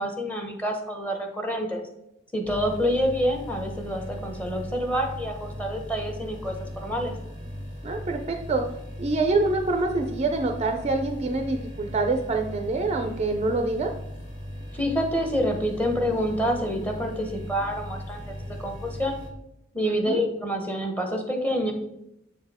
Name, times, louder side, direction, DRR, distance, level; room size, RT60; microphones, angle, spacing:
voice 1, 0.0-1.8 2.3-7.1 14.7-19.2 19.7-21.7, equal, 5° left, 3 dB, 0.8 m, -27 dB
sound 1, 2.4-19.3, equal, 35° left, 1.5 m, -38 dB
voice 2, 7.8-8.6 9.0-13.9 19.8-20.2, right 3 dB, 30° right, 5 dB, 0.4 m, -26 dB
7.2 x 4.4 x 3.5 m, 0.81 s
head